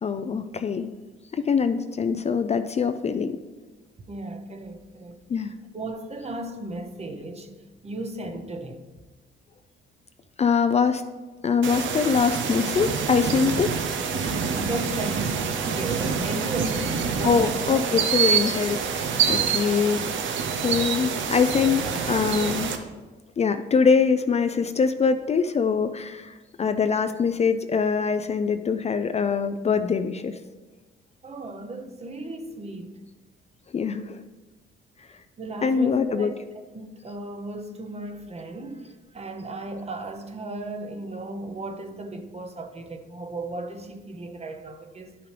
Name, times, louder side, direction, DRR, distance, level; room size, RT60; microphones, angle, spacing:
voice 1, 0.0-0.9 1.3-3.4 5.3-5.5 10.4-11.0 11.4-13.7 17.2-20.1 20.5-22.7 23.4-30.4 33.7-34.2 35.6-36.3, left 5 dB, 35° left, 0.4 m, -23 dB
voice 2, 4.1-5.2 5.7-7.5 7.8-8.8 14.6-18.1 31.2-33.0 35.4-36.3 36.7-45.2, right 2 dB, 30° right, 0.9 m, -35 dB
sound 1, 11.6-22.8, right 6 dB, 75° right, 0.8 m, -26 dB
11.0 x 5.8 x 3.4 m
cardioid pair, 90°, 20 cm